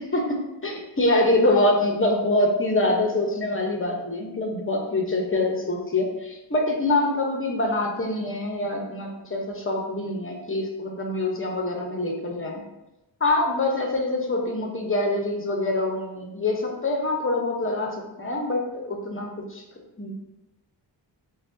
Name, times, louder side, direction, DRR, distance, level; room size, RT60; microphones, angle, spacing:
voice 1, 0.0-12.6 13.2-19.6 20.0-20.1, left 2 dB, 30° left, 1 dB, 0.8 m, -25 dB
5.8 x 2.3 x 2.6 m, 0.97 s
wide cardioid pair, 55°, 44 cm